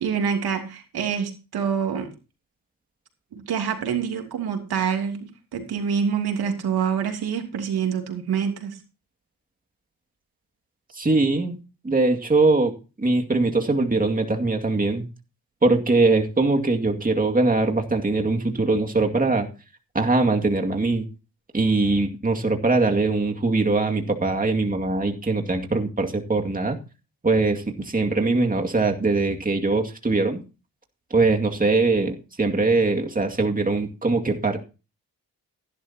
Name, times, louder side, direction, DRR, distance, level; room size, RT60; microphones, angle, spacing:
voice 1, 0.0-2.1 3.3-8.8, right 7 dB, 80° right, 4 dB, 3.0 m, -26 dB
voice 2, 10.9-11.6 11.8-12.7 13.0-15.0 15.6-19.5 19.9-21.0 21.5-26.8 27.2-30.4 31.1-34.6, right 3 dB, 20° right, 3 dB, 2.3 m, -22 dB
15.5 x 11.5 x 2.9 m, 0.31 s
cardioid pair, 65°, 37 cm